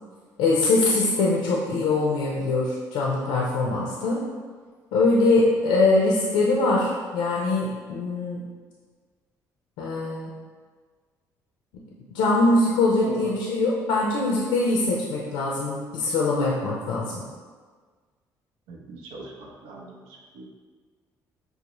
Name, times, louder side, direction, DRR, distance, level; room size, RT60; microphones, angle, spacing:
voice 1, 0.4-4.2 4.9-8.4 9.8-10.4 12.1-17.2, left 2 dB, 85° left, -3 dB, 0.5 m, -22 dB
voice 2, 18.7-20.0 20.3-20.5, right 3 dB, 85° right, -1 dB, 0.6 m, -38 dB
5.3 x 2.0 x 2.9 m, 1.5 s
supercardioid pair, 70°, 8 cm